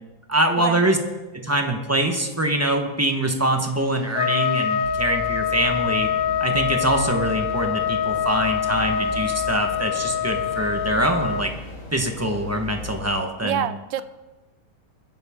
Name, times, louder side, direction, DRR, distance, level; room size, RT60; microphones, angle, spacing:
voice 1, 0.3-1.0 1.3-6.1 6.4-11.5 11.9-13.7, right 1 dB, 10° right, 4 dB, 0.7 m, -24 dB
Trumpet, 4.1-11.5, left 8 dB, 85° left, 0.7 m, -25 dB
sound 1, 4.8-13.0, left 5 dB, 20° left, 1.3 m, -39 dB
sound 2, 5.6-13.1, left 1 dB, 35° left, 3.9 m, -41 dB
voice 2, 13.4-14.0, right 10 dB, 75° right, 14 dB, 1.2 m, -26 dB
21.5 x 10.5 x 3.7 m, 1.1 s
omnidirectional pair, 2.4 m